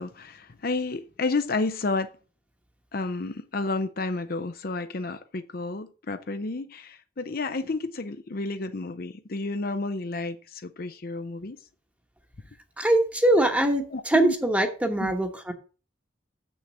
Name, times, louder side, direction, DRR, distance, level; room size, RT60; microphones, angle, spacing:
voice 1, 0.0-2.1 2.9-11.6 13.9-14.3 15.0-15.1, left 3 dB, 50° left, 0.6 m, -31 dB
voice 2, 12.8-15.5, right 1 dB, 10° right, 1.1 m, -22 dB
7.3 x 6.3 x 7.5 m
head